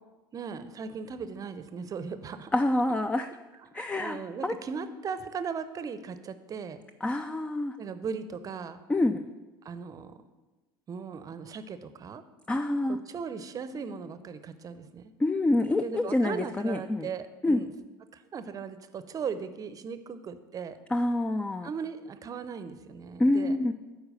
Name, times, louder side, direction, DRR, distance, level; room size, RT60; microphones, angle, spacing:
voice 1, 0.3-2.5 3.7-6.8 7.8-8.8 9.6-10.2 10.9-12.2 12.9-15.1 15.8-17.7 18.1-20.8 21.6-23.6, right 6 dB, 30° right, 11 dB, 0.7 m, -38 dB
voice 2, 2.5-3.3 3.7-4.2 4.4-4.5 7.0-7.8 8.9-9.2 12.5-13.0 15.2-17.1 17.4-17.6 20.9-21.7 23.2-23.7, left 2 dB, 10° left, 10 dB, 0.3 m, -26 dB
8.7 x 4.6 x 6.7 m, 1.2 s
hypercardioid pair, 70°, 12 cm